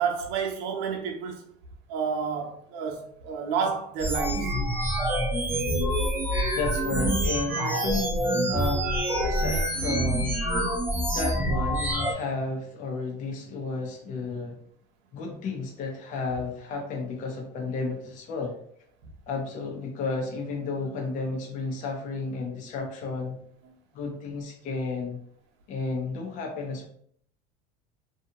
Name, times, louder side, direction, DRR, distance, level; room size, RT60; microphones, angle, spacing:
voice 1, 0.0-1.5 1.9-4.5 10.7-10.8 23.6-23.7, right 6 dB, 65° right, 0.7 m, -30 dB
sound 1, 4.0-12.1, right 1 dB, 10° right, 0.6 m, -26 dB
voice 2, 6.5-8.1 8.5-10.4 11.1-14.6 15.1-18.5 19.3-23.4 23.9-25.2 25.7-26.9, left 4 dB, 40° left, 0.6 m, -32 dB
2.8 x 2.3 x 2.7 m
cardioid pair, 135°, 20 cm